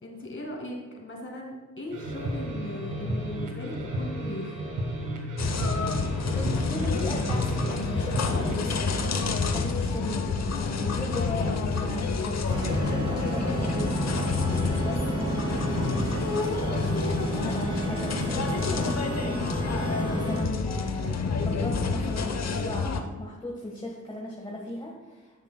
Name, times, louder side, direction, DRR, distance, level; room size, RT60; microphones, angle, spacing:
voice 1, 0.0-4.7, left 2 dB, 40° left, -1 dB, 2.1 m, -38 dB
sound 1, 1.9-8.6, right 1 dB, 90° right, 1.5 m, -32 dB
sound 2, 5.4-23.0, left 4 dB, 60° left, 0.8 m, -29 dB
voice 2, 6.3-14.0 14.6-25.4, left 1 dB, 15° left, -3 dB, 1.5 m, -37 dB
sound 3, 12.5-20.4, right 1 dB, 15° right, 2.2 m, -31 dB
12.0 x 6.4 x 2.3 m, 1.2 s
cardioid pair, 55°, 30 cm